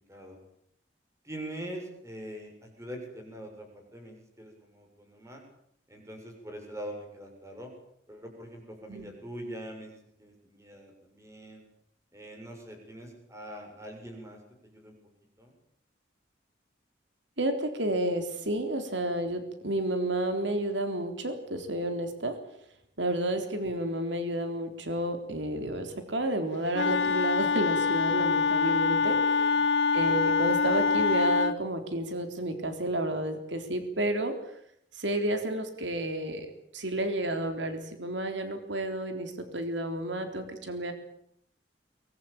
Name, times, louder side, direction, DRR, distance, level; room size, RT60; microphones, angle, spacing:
voice 1, 1.2-5.4 5.9-7.7 8.1-9.9 10.2-11.6 12.1-14.9 15.4-15.5 29.1-29.6, right 1 dB, 15° right, 3 dB, 7.2 m, -43 dB
voice 2, 17.4-22.4 23.0-29.4 29.9-34.4 34.9-36.5 36.7-40.9, right 1 dB, 85° right, 7 dB, 3.7 m, -31 dB
Wind instrument woodwind instrument, 26.7-31.6, left 4 dB, 75° left, 0.9 m, -25 dB
24.0 x 21.0 x 8.9 m, 0.71 s
head